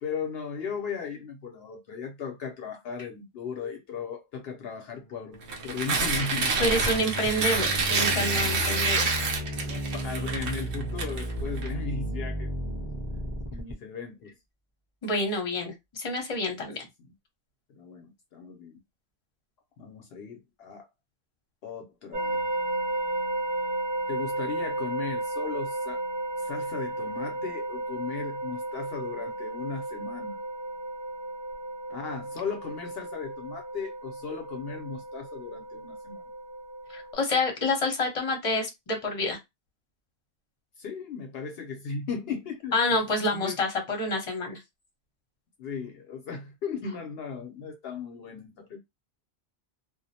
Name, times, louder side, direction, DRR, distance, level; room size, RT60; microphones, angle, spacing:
voice 1, 0.0-5.4 5.6-6.7 8.5-8.6 9.6-12.9 13.5-14.4 16.6-16.7 17.7-18.8 19.8-20.8 21.6-22.4 24.1-26.0 26.4-30.4 31.9-36.2 40.8-42.8 43.1-43.6 45.6-48.8, left 5 dB, 70° left, 0.8 m, -37 dB
sound 1, 5.0-13.7, left 1 dB, 20° right, 0.8 m, -35 dB
Tearing, 5.4-11.7, right 4 dB, 85° right, 0.9 m, -28 dB
voice 2, 6.6-9.1 15.0-16.8 36.9-39.4 42.7-44.6, left 2 dB, 35° left, 0.8 m, -28 dB
sound 2, 22.1-37.1, right 2 dB, 50° right, 0.8 m, -34 dB
2.3 x 2.0 x 2.7 m
omnidirectional pair, 1.1 m